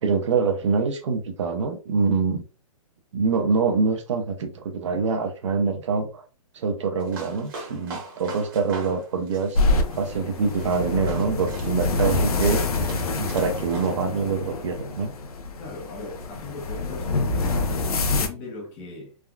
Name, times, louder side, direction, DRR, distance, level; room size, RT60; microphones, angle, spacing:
voice 1, 0.0-2.4 3.1-6.3 6.5-12.9 13.2-15.1, right 5 dB, 55° right, 0.7 m, -25 dB
sound 1, 7.0-13.9, right 3 dB, 40° right, 1.1 m, -41 dB
sound 2, 9.5-18.3, left 3 dB, 85° left, 0.7 m, -26 dB
voice 2, 15.6-19.2, left 3 dB, 10° left, 0.4 m, -39 dB
3.5 x 2.2 x 2.2 m
hypercardioid pair, 170°, 19 cm